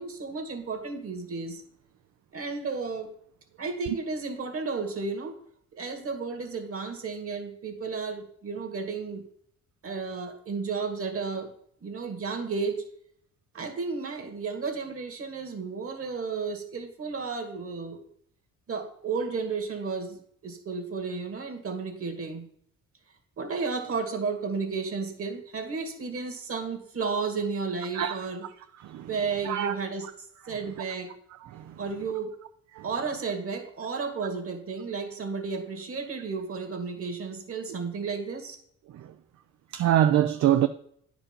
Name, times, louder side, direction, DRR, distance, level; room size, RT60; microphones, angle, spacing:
voice 1, 0.0-1.6 2.3-3.1 3.6-5.3 5.7-9.2 9.8-11.5 11.8-12.8 13.5-18.0 18.7-22.5 23.4-28.5 29.0-30.1 30.5-31.1 31.8-32.3 32.8-38.6, right 4 dB, 50° right, 2.1 m, -33 dB
voice 2, 27.9-28.2 28.8-29.1 29.4-29.7 31.5-31.7 32.8-32.9 38.9-39.1 39.7-40.7, right 11 dB, 65° right, 0.5 m, -24 dB
9.8 x 5.1 x 5.3 m
cardioid pair, 90°, 30 cm